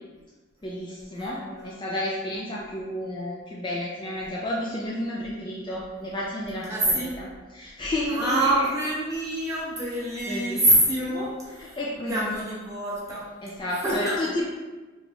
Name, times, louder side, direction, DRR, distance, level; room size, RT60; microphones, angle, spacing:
voice 1, 0.6-8.7 10.3-10.7 11.0-11.3 11.6-12.4 13.4-14.4, left 1 dB, 25° left, -4 dB, 0.3 m, -32 dB
voice 2, 1.2-1.7 6.7-7.1 8.1-11.8 12.1-13.2 13.7-14.2, right 1 dB, 15° right, -8 dB, 0.9 m, -26 dB
3.8 x 2.3 x 3.4 m, 1.3 s
head